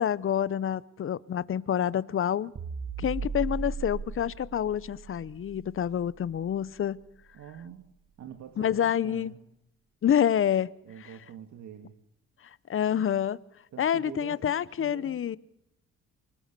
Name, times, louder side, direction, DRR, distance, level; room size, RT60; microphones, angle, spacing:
voice 1, 0.0-2.5 3.0-7.0 8.6-9.3 10.0-10.7 12.7-13.4 13.8-15.4, left 9 dB, 45° left, 0.8 m, -27 dB
sound 1, 2.6-7.0, right 4 dB, 45° right, 1.8 m, -38 dB
voice 2, 7.3-7.8 8.2-9.4 10.8-11.9 13.7-15.2, right 9 dB, 70° right, 1.9 m, -45 dB
25.0 x 19.5 x 6.8 m
cardioid pair, 90°, 30 cm